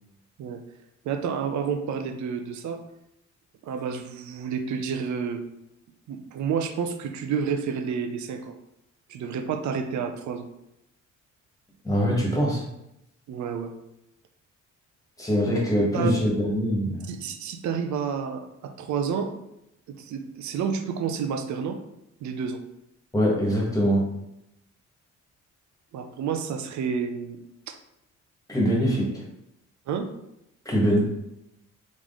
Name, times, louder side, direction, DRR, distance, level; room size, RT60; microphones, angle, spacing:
voice 1, 1.0-2.8 3.6-5.4 6.1-8.5 9.1-10.5 13.3-13.7 15.9-16.1 17.1-19.3 20.0-21.8 22.2-22.6 25.9-27.4 27.7-27.8 29.9-30.1, right 6 dB, 70° right, 6 dB, 0.6 m, -30 dB
voice 2, 11.8-12.6 15.2-17.1 23.1-24.0 28.5-29.1 30.6-31.0, equal, 10° left, -3 dB, 1.5 m, -23 dB
3.7 x 3.1 x 3.7 m, 0.84 s
cardioid pair, 90°, 30 cm